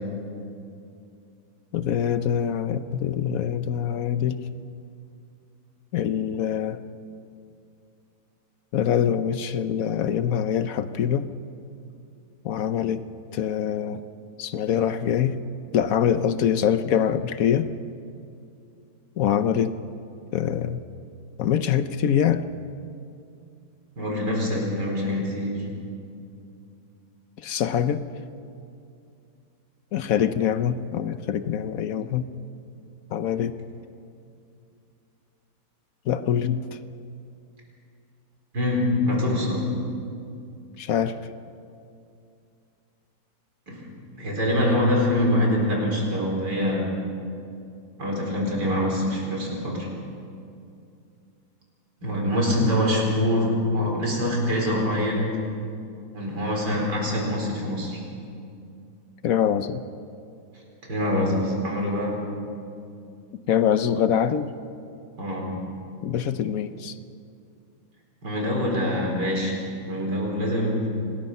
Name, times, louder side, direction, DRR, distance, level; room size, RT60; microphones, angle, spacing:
voice 1, 1.7-4.4 5.9-6.8 8.7-11.3 12.4-13.0 13.3-14.0 14.4-15.4 15.7-17.7 19.2-19.7 20.3-20.8 21.4-22.5 27.4-28.0 29.9-32.3 33.1-33.5 36.1-36.7 40.8-41.2 52.6-52.7 59.2-59.8 63.5-64.5 66.0-66.9, left 9 dB, 60° left, 11 dB, 1.1 m, -24 dB
voice 2, 24.0-25.7 38.5-39.7 43.7-43.9 44.1-46.9 48.0-49.9 52.0-55.3 56.1-58.0 60.8-62.2 65.2-65.5 68.2-69.6 69.9-70.9, left 1 dB, 85° right, -1 dB, 5.0 m, -24 dB
26.0 x 20.0 x 5.5 m, 2.5 s
omnidirectional pair, 1.8 m